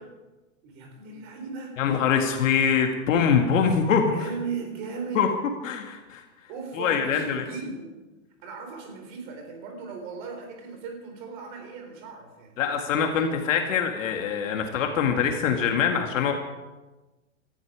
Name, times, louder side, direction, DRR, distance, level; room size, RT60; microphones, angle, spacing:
voice 1, 0.6-1.7 4.1-5.3 6.5-7.9 8.4-13.4, right 5 dB, 35° right, 3 dB, 4.0 m, -37 dB
voice 2, 1.8-4.1 5.1-5.3 5.6-6.2 6.7-7.4 12.6-16.3, left 7 dB, 65° left, 3 dB, 2.2 m, -23 dB
18.0 x 14.0 x 5.0 m, 1.1 s
supercardioid pair, 175°, 41 cm